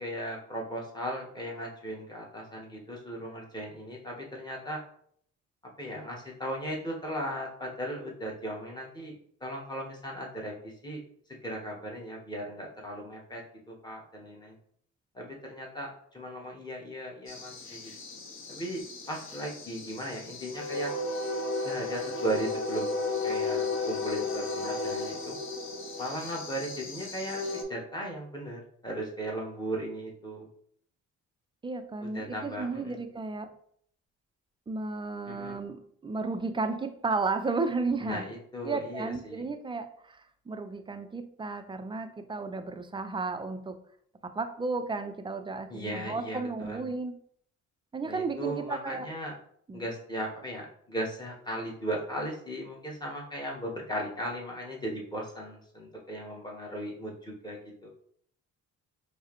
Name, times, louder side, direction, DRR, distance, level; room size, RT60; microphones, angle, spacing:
voice 1, 0.0-4.8 5.8-9.1 9.4-11.0 11.4-14.6 15.1-17.9 18.5-20.9 21.6-22.9 23.2-25.4 26.0-30.5 32.0-33.0 35.3-35.6 38.0-39.4 45.7-46.8 48.0-49.3 49.7-57.9, right 1 dB, 15° left, -2 dB, 1.2 m, -37 dB
sound 1, 17.3-27.6, left 3 dB, 45° left, 0.7 m, -34 dB
voice 2, 31.6-33.6 34.7-38.2 38.6-43.8 44.2-47.2 47.9-49.1 49.7-49.8, right 3 dB, 15° right, 8 dB, 0.4 m, -33 dB
4.6 x 2.1 x 3.0 m, 0.63 s
cardioid pair, 90°, 30 cm